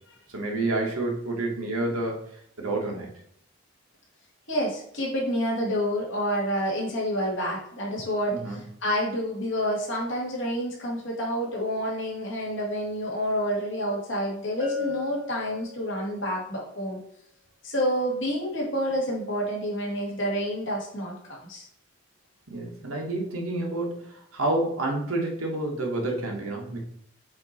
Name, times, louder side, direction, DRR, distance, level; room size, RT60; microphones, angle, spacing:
voice 1, 0.3-2.2 2.6-3.1 8.4-8.6 22.5-26.8, right 2 dB, 85° right, 0 dB, 1.5 m, -29 dB
voice 2, 4.5-17.0 17.6-21.7, equal, 60° left, -3 dB, 2.2 m, -28 dB
Bell, 14.6-16.2, left 5 dB, 10° right, 1.1 m, -34 dB
7.6 x 3.0 x 4.2 m, 0.70 s
head